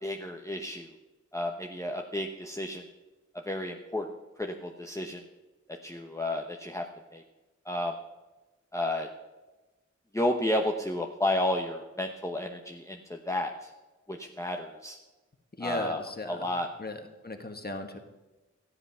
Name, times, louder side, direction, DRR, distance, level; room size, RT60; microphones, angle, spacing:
voice 1, 0.0-0.9 1.3-2.8 3.5-4.1 4.4-5.2 5.8-6.8 7.1-7.2 7.7-7.9 8.7-9.1 10.1-13.7 14.1-15.0 15.6-16.0 16.3-16.7, left 1 dB, 10° left, 1 dB, 0.9 m, -31 dB
voice 2, 15.6-16.5 16.8-18.0, left 1 dB, 35° left, 5 dB, 1.4 m, -37 dB
13.5 x 9.8 x 5.6 m, 1.1 s
wide cardioid pair, 50°, 29 cm